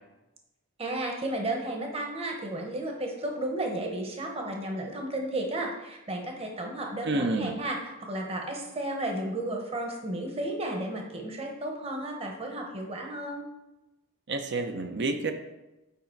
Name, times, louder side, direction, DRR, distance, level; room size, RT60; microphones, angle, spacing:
voice 1, 0.8-13.5, right 1 dB, 25° right, 1 dB, 1.1 m, -33 dB
voice 2, 7.0-7.6 14.3-15.3, right 2 dB, 55° right, 6 dB, 0.7 m, -29 dB
8.3 x 5.0 x 4.6 m, 1.0 s
head